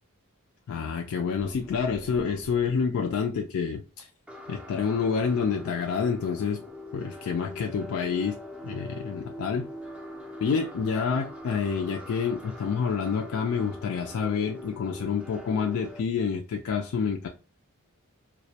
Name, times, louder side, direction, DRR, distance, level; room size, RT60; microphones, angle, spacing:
voice 1, 0.7-4.1 4.5-6.6 6.9-8.4 8.6-9.7 10.4-17.3, left 6 dB, 65° left, 0.3 m, -28 dB
sound 1, 1.4-3.1 4.3-16.0, left 1 dB, 5° right, 0.4 m, -43 dB
2.2 x 2.1 x 2.7 m
head